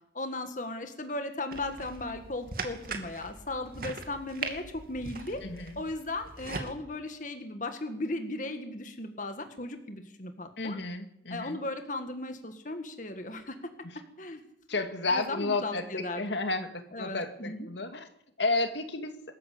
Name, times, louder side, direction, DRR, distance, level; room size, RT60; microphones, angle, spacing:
voice 1, 0.1-5.4 5.8-10.8 11.3-13.7 14.2-14.4 15.1-16.2 16.9-17.7, left 2 dB, 45° left, 7 dB, 1.9 m, -36 dB
sound 1, 1.5-6.7, right 4 dB, 55° right, 2.7 m, -40 dB
voice 2, 5.4-5.8 10.6-11.6 14.7-18.1 18.4-19.2, left 3 dB, 75° left, 7 dB, 2.3 m, -32 dB
23.5 x 14.0 x 8.6 m, 0.77 s
head